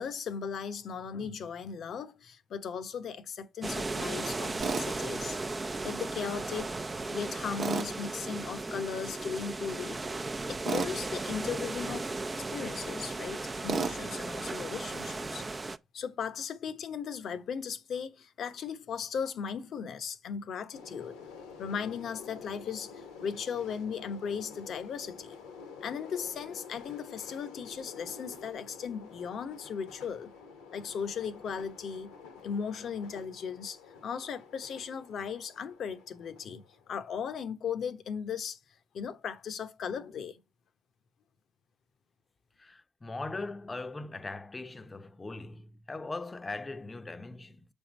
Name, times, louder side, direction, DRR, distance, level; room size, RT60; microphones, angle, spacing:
voice 1, 0.0-5.4 5.8-6.8 7.1-10.0 10.5-12.1 12.5-15.5 15.9-21.1 21.6-25.4 25.8-30.3 30.7-32.1 32.4-38.6 38.9-40.4, left 6 dB, 65° left, 0.9 m, -37 dB
sound 1, 3.6-15.8, right 3 dB, 30° right, 0.6 m, -36 dB
Tools, 4.6-4.9 7.6-7.9 10.6-10.9 13.7-14.0, right 5 dB, 60° right, 0.9 m, -31 dB
sound 2, 20.7-37.2, left 5 dB, 90° left, 1.2 m, -49 dB
voice 2, 42.6-47.7, left 3 dB, 30° left, 0.7 m, -40 dB
7.0 x 3.6 x 5.2 m
hypercardioid pair, 45°, 0 cm